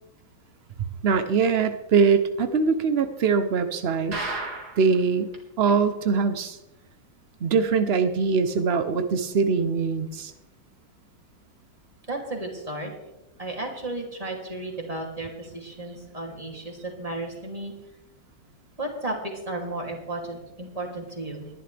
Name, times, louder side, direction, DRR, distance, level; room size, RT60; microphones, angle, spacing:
voice 1, 1.0-4.2 4.8-5.3 5.6-6.6 7.4-10.3, right 5 dB, 75° right, 9 dB, 0.5 m, -22 dB
sound 1, 4.1-5.0 5.3-5.4 5.7-5.8 6.3-6.4, right 2 dB, 55° right, 2.5 m, -32 dB
voice 2, 12.1-12.9 13.4-17.7 18.8-21.5, right 2 dB, 20° right, 0 dB, 2.8 m, -34 dB
21.0 x 11.5 x 3.4 m, 0.94 s
omnidirectional pair, 2.1 m